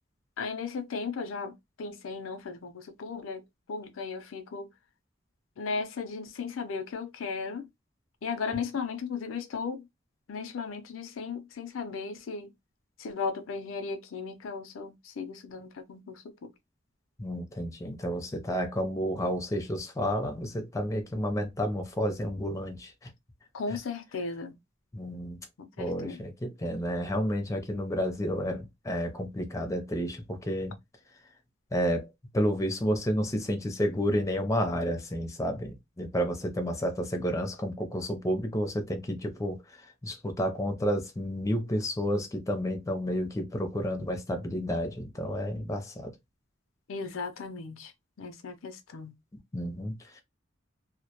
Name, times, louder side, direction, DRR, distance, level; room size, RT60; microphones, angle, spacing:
voice 1, 0.4-3.4 3.7-4.7 5.6-7.7 8.2-9.9 10.3-12.5 13.0-16.5 23.5-24.5 25.6-26.3 46.9-47.9 48.2-49.1, left 5 dB, 85° left, 0.5 m, -36 dB
voice 2, 17.2-23.1 24.9-25.4 25.8-30.8 31.7-32.1 32.3-39.6 40.0-46.1 49.5-50.2, equal, 15° left, 0.5 m, -31 dB
2.2 x 2.1 x 2.8 m
head